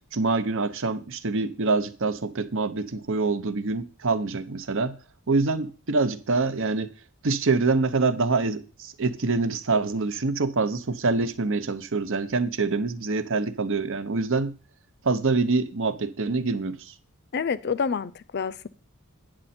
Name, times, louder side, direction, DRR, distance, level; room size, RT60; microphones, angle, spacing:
voice 1, 0.1-5.0 5.3-6.9 7.2-14.5 15.0-16.9, right 3 dB, 60° right, 0.8 m, -25 dB
voice 2, 17.3-18.7, left 6 dB, 50° left, 0.5 m, -28 dB
9.6 x 7.6 x 4.3 m
head